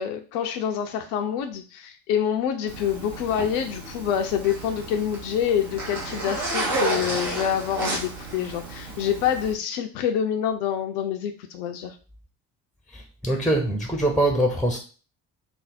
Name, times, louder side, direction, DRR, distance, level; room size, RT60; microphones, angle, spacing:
voice 1, 0.0-12.0, left 9 dB, 65° left, 0.5 m, -26 dB
Zipper (clothing), 2.7-9.5, right 2 dB, 70° right, 1.3 m, -32 dB
voice 2, 12.9-14.8, right 1 dB, ahead, 0.6 m, -23 dB
3.3 x 2.0 x 4.1 m
figure-of-eight pair, 45°, 47 cm